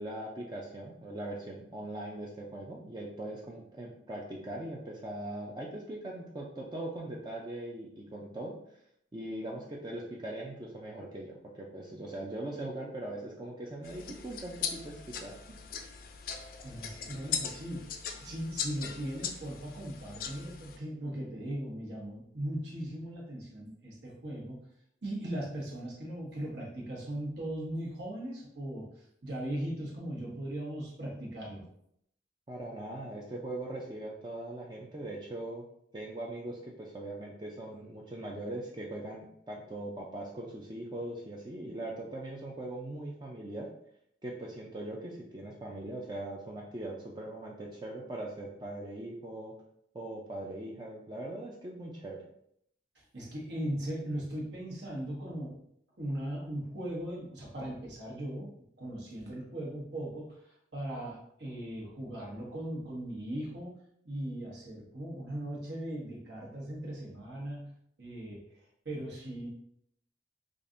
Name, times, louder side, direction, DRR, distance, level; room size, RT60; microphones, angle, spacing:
voice 1, 0.0-8.5 9.1-15.6 32.5-35.7 35.9-43.7 44.2-49.5 49.9-52.2, right 1 dB, 25° right, -2 dB, 0.4 m, -40 dB
sound 1, 13.8-20.8, left 7 dB, 50° left, 0.4 m, -39 dB
voice 2, 16.3-17.9 18.2-24.6 25.0-31.6 52.9-55.6 56.0-58.5 58.8-60.4 60.7-63.7 64.0-67.7 68.0-68.4 68.8-69.5, right 1 dB, 70° right, -4 dB, 1.3 m, -38 dB
5.0 x 2.4 x 2.5 m, 0.72 s
head